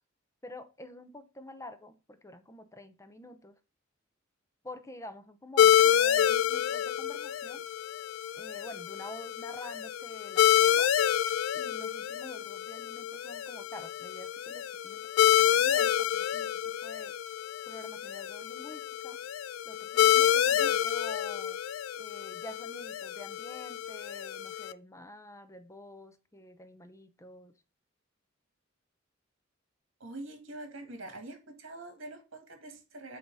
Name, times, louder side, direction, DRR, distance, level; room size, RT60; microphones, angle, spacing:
voice 1, 0.4-3.6 4.6-7.6 8.4-10.9 11.5-17.1 17.7-19.2 19.6-21.6 22.0-27.5, left 1 dB, 15° left, 0.7 m, -48 dB
sound 1, 5.6-24.7, left 10 dB, 80° left, 0.3 m, -28 dB
voice 2, 30.0-33.2, right 2 dB, 75° right, 1.8 m, -44 dB
7.9 x 2.9 x 5.4 m
head